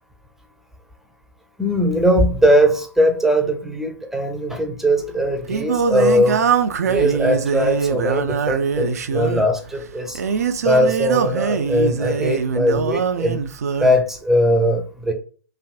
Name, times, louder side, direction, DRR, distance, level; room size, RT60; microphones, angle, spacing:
voice 1, 1.6-6.4 6.9-10.2 10.6-13.4 13.8-15.1, equal, 5° right, 0.5 m, -19 dB
Singing, 5.0-14.0, right 6 dB, 65° right, 0.4 m, -22 dB
3.3 x 2.5 x 2.4 m
figure-of-eight pair, 110°, 9 cm